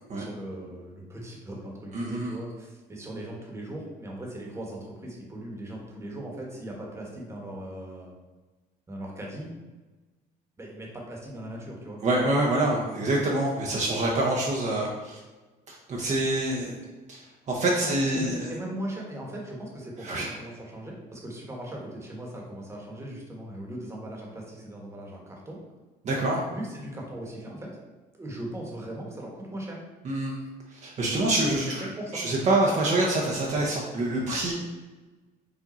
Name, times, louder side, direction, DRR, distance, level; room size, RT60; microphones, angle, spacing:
voice 1, 0.1-8.1 8.9-9.5 10.6-12.0 17.8-25.6 26.5-27.8 28.1-29.8 31.5-32.2, right 1 dB, 15° right, -2 dB, 1.2 m, -39 dB
voice 2, 1.9-2.3 12.0-15.2 15.7-16.8 17.1-18.6 20.0-20.3 26.0-26.4 30.0-30.4 30.7-31.9 32.1-34.5, right 2 dB, 45° right, -2 dB, 0.8 m, -26 dB
4.9 x 2.6 x 4.1 m, 1.2 s
cardioid pair, 110°, 17 cm